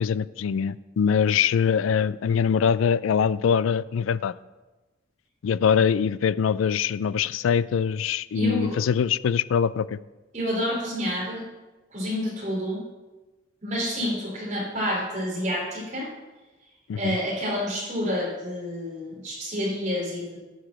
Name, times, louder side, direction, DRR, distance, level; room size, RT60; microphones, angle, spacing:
voice 1, 0.0-4.3 5.4-10.0 16.9-17.2, left 7 dB, 90° left, 18 dB, 0.3 m, -23 dB
voice 2, 8.3-8.8 10.3-11.4 11.9-12.8 13.6-16.1 17.0-20.4, equal, 40° right, -4 dB, 3.4 m, -28 dB
10.0 x 5.0 x 7.4 m, 1.2 s
head